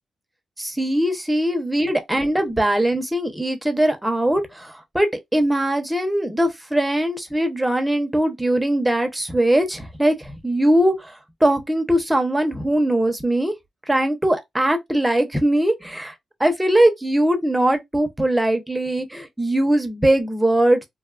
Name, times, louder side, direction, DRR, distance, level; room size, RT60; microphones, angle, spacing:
voice 1, 0.6-13.5 13.9-16.1 16.4-20.8, right 1 dB, 10° right, 0.7 m, -21 dB
2.7 x 2.3 x 2.3 m
cardioid pair, 80°, 0 cm